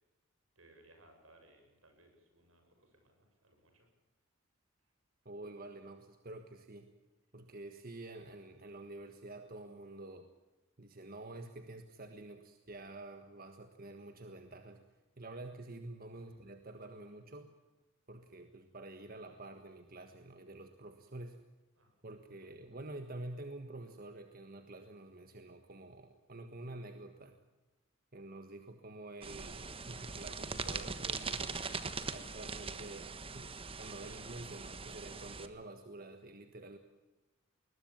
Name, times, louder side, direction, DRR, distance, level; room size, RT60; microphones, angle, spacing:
voice 1, 0.6-3.9 16.3-16.4 21.8-21.9, right 1 dB, 80° right, 5 dB, 7.5 m, -64 dB
voice 2, 5.2-6.9 7.3-10.3 10.8-14.9 15.2-17.5 18.1-21.4 22.0-27.4 28.1-31.6 32.1-36.8, right 2 dB, 45° right, 7 dB, 1.5 m, -48 dB
sound 1, 29.2-35.5, right 4 dB, 25° right, 1.3 m, -41 dB
21.0 x 21.0 x 7.3 m, 1.1 s
head